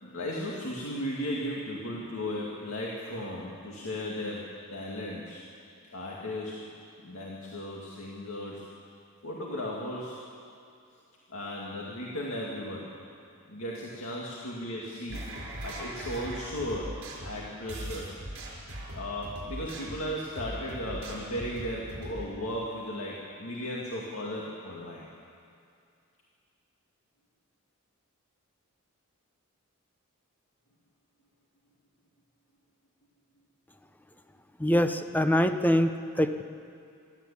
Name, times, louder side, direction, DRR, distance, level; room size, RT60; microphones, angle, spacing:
voice 1, 0.0-5.4 5.9-6.7 7.0-8.7 9.2-10.2 11.3-13.0 13.5-15.3 15.6-18.1 18.9-25.1, left 1 dB, 70° left, -4 dB, 2.3 m, -36 dB
sound 1, 15.1-22.2, right 1 dB, 65° right, 6.0 m, -40 dB
voice 2, 34.6-36.4, equal, 10° left, 9 dB, 0.7 m, -24 dB
24.5 x 13.0 x 8.6 m, 2.5 s
head